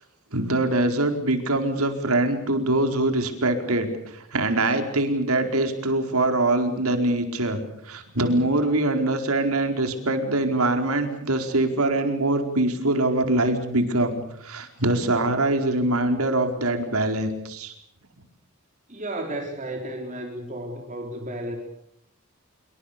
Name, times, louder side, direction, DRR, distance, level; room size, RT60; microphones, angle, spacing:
voice 1, 0.3-7.6 7.8-17.7, right 2 dB, 85° right, 6 dB, 4.7 m, -23 dB
voice 2, 18.9-21.6, right 1 dB, 35° right, 2 dB, 4.2 m, -33 dB
27.0 x 24.5 x 6.8 m, 0.72 s
head